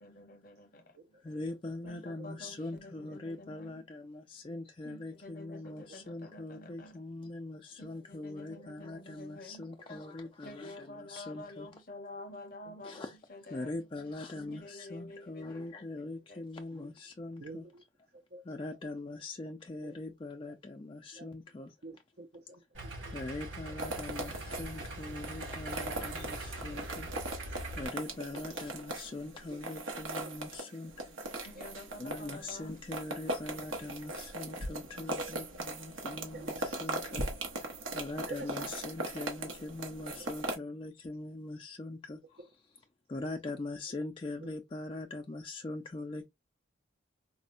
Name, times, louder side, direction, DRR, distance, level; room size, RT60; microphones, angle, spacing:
voice 1, 0.0-1.2 1.9-3.9 4.8-7.0 7.8-9.7 10.4-13.8 14.3-16.7 31.4-32.8, left 1 dB, 45° left, 0.7 m, -49 dB
voice 2, 1.2-11.7 12.8-13.1 13.5-17.6 18.5-21.8 23.1-27.1 27.8-31.2 32.0-37.7 37.9-42.4 43.1-46.3, left 2 dB, 25° left, 0.3 m, -42 dB
voice 3, 1.8-2.4 9.8-9.9 10.6-10.7 12.7-13.0 17.4-17.8 18.1-18.4 18.7-18.8 19.8-19.9 21.1-21.3 21.8-23.1 25.9-26.2 27.3-27.4 28.3-28.8 29.5-29.7 30.2-30.4 34.7-34.8 36.3-37.0 37.8-37.9 38.2-38.8 40.1-40.3 44.4-44.5, right 3 dB, 50° right, 0.4 m, -50 dB
Idling, 22.7-27.8, right 1 dB, 70° right, 1.8 m, -42 dB
sound 1, 23.8-40.6, right 1 dB, 90° right, 1.0 m, -39 dB
4.2 x 2.1 x 2.4 m
head